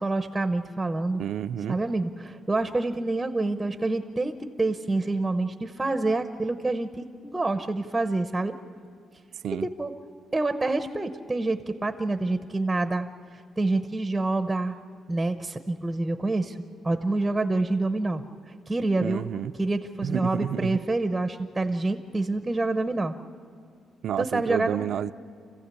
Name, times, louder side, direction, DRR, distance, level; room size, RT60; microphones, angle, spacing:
voice 1, 0.0-1.2 1.7-8.5 9.6-9.9 10.3-13.1 13.3-14.7 15.1-16.6 16.8-18.2 18.7-19.3 19.6-23.2 24.2-24.8, right 2 dB, 10° right, 8 dB, 0.8 m, -27 dB
voice 2, 1.2-1.8 9.4-9.7 19.0-19.5 20.0-20.9 24.0-25.1, right 9 dB, 65° right, 12 dB, 0.5 m, -30 dB
29.0 x 15.5 x 8.4 m, 2.3 s
cardioid pair, 150°, 0 cm